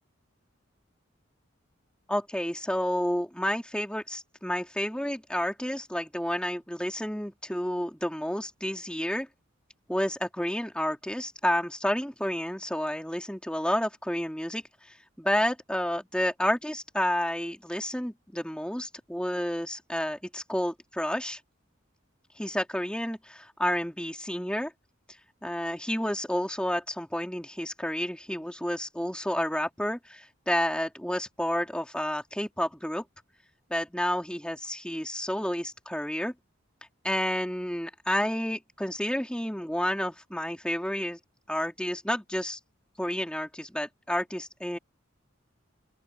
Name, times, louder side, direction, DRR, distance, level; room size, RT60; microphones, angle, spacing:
voice 1, 2.1-9.3 9.9-14.6 15.2-21.4 22.4-24.7 25.4-33.0 33.7-36.3 37.0-41.2 41.5-42.6 43.0-44.8, left 1 dB, 5° left, 3.2 m, -30 dB
open air
head